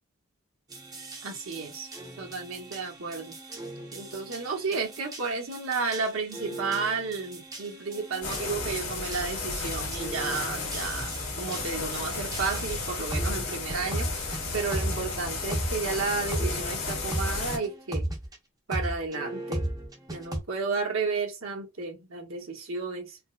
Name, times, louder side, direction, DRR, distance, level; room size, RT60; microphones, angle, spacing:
sound 1, 0.7-18.4 18.7-20.4, right 1 dB, 20° right, 0.8 m, -37 dB
voice 1, 1.2-1.9 2.2-3.4 3.9-18.1 18.7-19.6 20.1-23.2, right 4 dB, 85° right, 1.0 m, -32 dB
sound 2, 8.2-17.6, left 3 dB, 70° left, 1.4 m, -33 dB
4.4 x 2.1 x 2.4 m
head